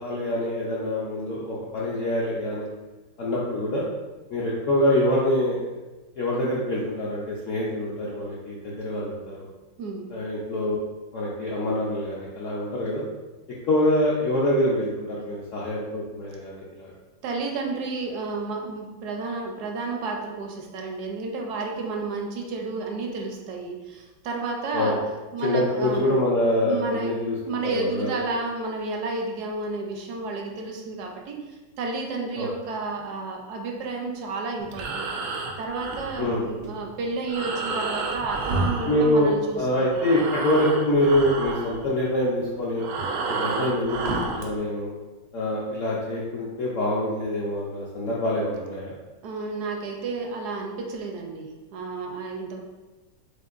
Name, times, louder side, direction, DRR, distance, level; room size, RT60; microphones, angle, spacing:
voice 1, 0.0-2.7 3.2-3.9 4.3-5.6 6.2-9.3 10.1-10.8 11.1-13.0 13.7-16.9 24.7-25.0 25.4-28.1 32.4-32.5 36.2-36.4 38.9-42.9 43.3-44.9 45.3-48.9, left 1 dB, 65° left, -6 dB, 0.8 m, -25 dB
voice 2, 9.8-10.1 17.2-25.0 25.3-26.2 26.6-27.2 27.5-35.2 35.6-39.6 49.2-52.6, right 3 dB, 70° right, 1 dB, 1.1 m, -31 dB
Breathing, 34.6-39.6 39.9-44.5, right 3 dB, 90° right, 0.7 m, -31 dB
6.4 x 2.5 x 2.5 m, 1.2 s
omnidirectional pair, 2.0 m